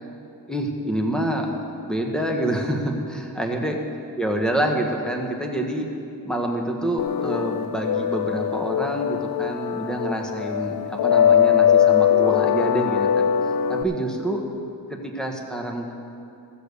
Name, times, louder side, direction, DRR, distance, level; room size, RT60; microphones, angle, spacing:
voice 1, 0.5-1.6 1.8-3.8 4.2-5.9 6.2-13.3 13.7-14.4 14.9-15.9, right 1 dB, ahead, 1 dB, 1.4 m, -27 dB
sound 1, 7.0-13.8, left 9 dB, 65° left, 0.6 m, -21 dB
15.0 x 6.8 x 6.8 m, 2.7 s
cardioid pair, 90°, 39 cm